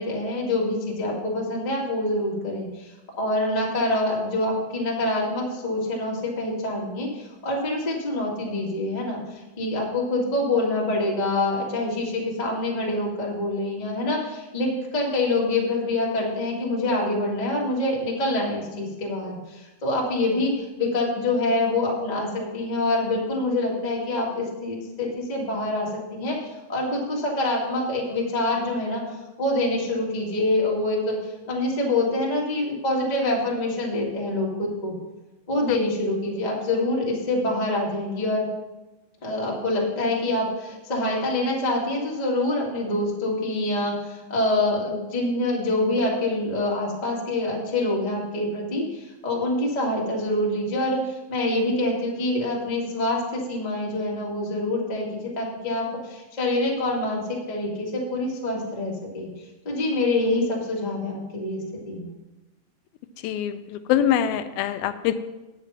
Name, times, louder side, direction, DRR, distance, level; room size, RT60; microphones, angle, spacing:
voice 1, 0.0-2.9 3.2-29.0 29.4-34.9 35.5-38.5 39.2-59.3 59.6-62.1, left 2 dB, 20° left, -3 dB, 1.0 m, -26 dB
voice 2, 63.2-65.1, left 10 dB, 85° left, 10 dB, 2.4 m, -24 dB
8.9 x 7.0 x 5.8 m, 1.1 s
omnidirectional pair, 4.2 m